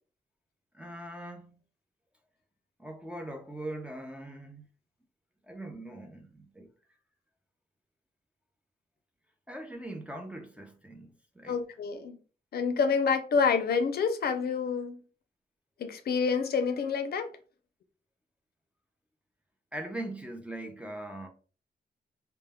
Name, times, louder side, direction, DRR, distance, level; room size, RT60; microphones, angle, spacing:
voice 1, 0.7-1.6 2.8-4.7 5.5-6.7 9.5-11.6 19.7-21.3, right 1 dB, 5° right, 0.4 m, -41 dB
voice 2, 11.5-12.2 12.5-15.0 15.8-17.3, left 5 dB, 65° left, 0.4 m, -28 dB
2.2 x 2.1 x 3.3 m
wide cardioid pair, 145°, 17 cm